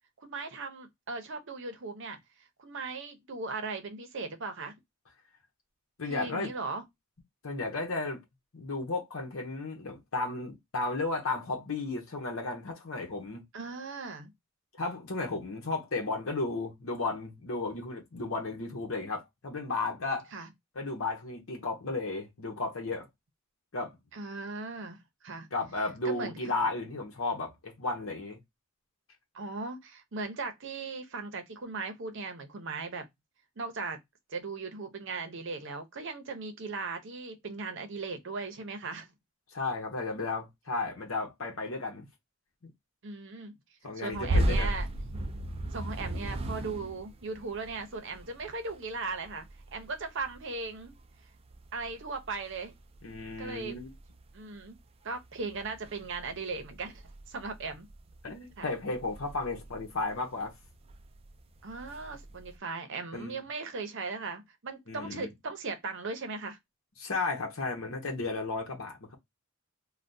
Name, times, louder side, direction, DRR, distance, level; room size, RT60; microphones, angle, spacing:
voice 1, 0.2-2.2 2.6-4.8 6.0-6.8 13.5-14.3 20.3-20.5 24.1-25.5 26.0-26.4 29.3-33.1 33.6-34.0 34.3-39.1 43.0-43.5 44.0-44.9 45.7-49.5 49.7-50.9 51.7-52.7 53.4-53.8 54.3-54.8 55.0-57.9 58.6-58.7 61.6-66.6, right 4 dB, 60° right, 0.7 m, -38 dB
voice 2, 6.0-6.5 7.4-8.2 8.5-13.4 14.8-20.3 20.7-23.1 23.7-23.9 25.5-28.4 39.5-42.1 42.6-42.7 43.8-44.8 53.0-53.9 58.2-60.5 63.1-63.4 64.9-65.3 67.0-69.1, left 3 dB, 75° left, 0.9 m, -34 dB
sound 1, 44.1-54.8 55.1-62.6, right 1 dB, 30° right, 0.4 m, -37 dB
3.4 x 2.3 x 2.5 m
head